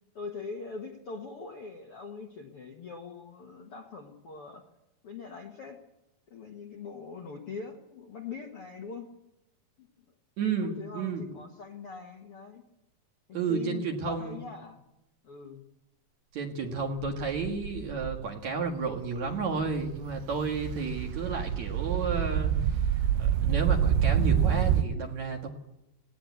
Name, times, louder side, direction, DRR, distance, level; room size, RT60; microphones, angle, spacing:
voice 1, 0.1-4.6 5.0-5.8 6.3-9.1 9.8-9.9 10.6-12.6 13.3-14.8 15.2-15.6, left 5 dB, 55° left, 2 dB, 1.6 m, -42 dB
voice 2, 10.4-11.4 13.3-14.4 16.3-22.5 23.2-25.5, right 4 dB, 55° right, 3 dB, 2.6 m, -32 dB
sound 1, 17.0-18.2 18.8-19.0 19.3-24.8, right 9 dB, 85° right, 2.9 m, -27 dB
19.0 x 17.0 x 8.2 m, 0.90 s
omnidirectional pair, 4.8 m